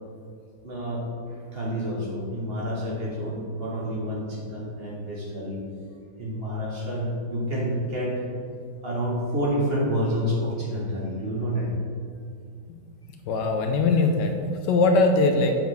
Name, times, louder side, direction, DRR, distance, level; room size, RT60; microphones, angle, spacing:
voice 1, 0.6-1.0 1.5-5.6 6.2-8.1 8.8-11.7, equal, 35° right, -4 dB, 1.3 m, -28 dB
voice 2, 13.2-15.6, left 3 dB, 75° left, 4 dB, 1.3 m, -21 dB
7.7 x 6.9 x 3.5 m, 2.3 s
omnidirectional pair, 2.0 m